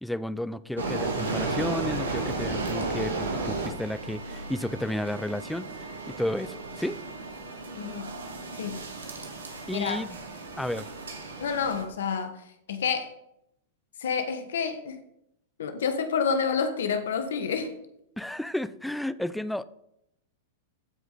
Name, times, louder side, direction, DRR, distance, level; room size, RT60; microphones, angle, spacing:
voice 1, 0.0-5.9 6.2-7.0 9.7-10.2 10.6-10.9 18.2-19.6, left 1 dB, 5° left, 15 dB, 0.5 m, -32 dB
Escalator weiting Train GO(Syrecka), 0.8-11.8, right 3 dB, 85° right, 2.3 m, -34 dB
voice 2, 7.7-8.1 8.6-8.8 9.7-10.0 11.4-12.4 12.7-13.1 14.0-15.0 15.6-17.7, left 6 dB, 75° left, 8 dB, 1.5 m, -29 dB
15.0 x 5.0 x 4.0 m, 0.76 s
hypercardioid pair, 110°, 0 cm